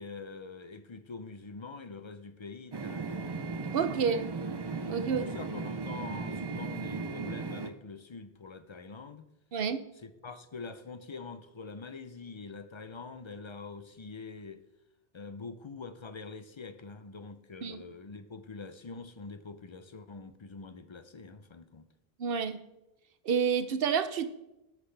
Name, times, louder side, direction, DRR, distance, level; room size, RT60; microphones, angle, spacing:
voice 1, 0.0-3.2 3.7-3.8 5.0-9.3 10.0-14.6 15.1-21.9, left 4 dB, 40° left, 0.4 m, -45 dB
sound 1, 2.7-7.7, right 4 dB, 35° right, 0.4 m, -36 dB
voice 2, 3.7-4.3 4.9-5.3 9.5-9.8 17.6-17.8 22.2-22.6 23.2-24.2, right 6 dB, 65° right, 0.9 m, -29 dB
17.0 x 6.0 x 3.3 m
omnidirectional pair, 1.0 m